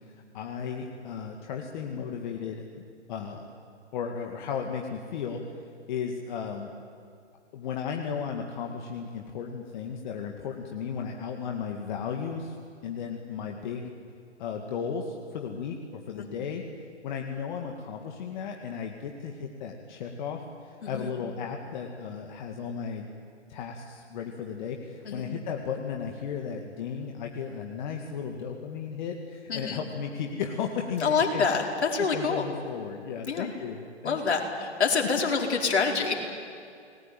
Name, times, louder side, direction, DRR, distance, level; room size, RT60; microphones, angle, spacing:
voice 1, 0.3-3.5 3.9-5.4 5.9-6.7 7.5-12.6 12.8-13.9 14.4-16.6 17.0-23.1 23.5-31.5 31.9-34.4, left 6 dB, 40° left, 2 dB, 2.3 m, -35 dB
voice 2, 29.5-29.8 31.0-32.5 33.3-33.5 34.0-36.1, left 5 dB, 65° left, 1 dB, 4.9 m, -26 dB
30.0 x 20.0 x 9.2 m, 2.4 s
hypercardioid pair, 135°, 35 cm